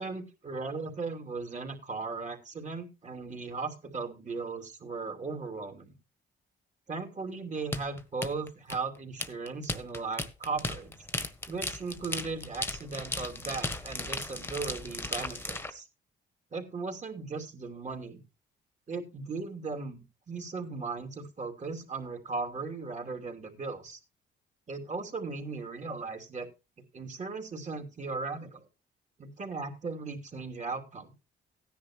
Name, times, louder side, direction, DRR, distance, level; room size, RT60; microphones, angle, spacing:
voice 1, 0.0-5.9 6.9-11.1 11.5-15.8 16.5-18.2 18.9-24.0 24.7-26.5 26.9-28.6 29.2-31.1, right 4 dB, 35° right, 4 dB, 2.9 m, -37 dB
sound 1, 7.7-15.7, left 2 dB, 10° left, 1.4 m, -36 dB
15.5 x 10.0 x 3.0 m, 0.28 s
cardioid pair, 90°, 20 cm